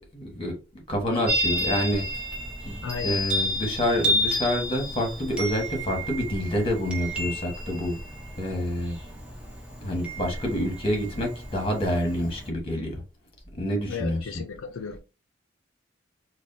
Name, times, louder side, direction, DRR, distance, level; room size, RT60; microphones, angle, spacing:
voice 1, 0.0-2.0 2.6-8.0 8.4-9.0 9.8-13.0 13.5-14.2, equal, 30° left, 1.4 m, -27 dB
Chime, 1.3-12.5, equal, 5° right, 0.9 m, -31 dB
voice 2, 2.8-3.2 13.9-15.0, left 5 dB, 90° left, 0.5 m, -34 dB
4.7 x 2.3 x 2.7 m
head